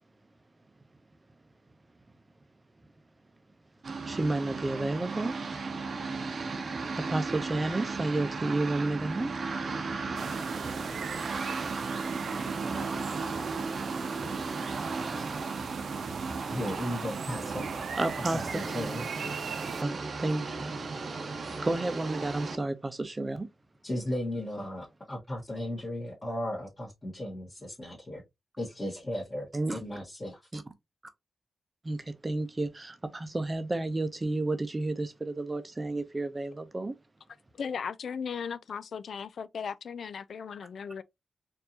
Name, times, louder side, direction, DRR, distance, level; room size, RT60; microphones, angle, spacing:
sound 1, 3.8-22.6, right 4 dB, 55° right, 0.7 m, -35 dB
voice 1, 4.1-5.4 7.0-9.3 18.0-18.6 19.8-20.7 21.6-23.5 29.5-29.8 30.5-30.6 31.8-36.9, right 2 dB, 25° right, 0.6 m, -31 dB
sound 2, 10.2-19.8, right 6 dB, 85° right, 0.4 m, -40 dB
voice 2, 16.5-17.6 18.3-19.1 23.8-28.2 28.6-30.4, left 1 dB, 25° left, 1.3 m, -36 dB
voice 3, 37.6-41.0, left 6 dB, 75° left, 0.3 m, -37 dB
4.4 x 2.7 x 2.7 m
wide cardioid pair, 125°, 0 cm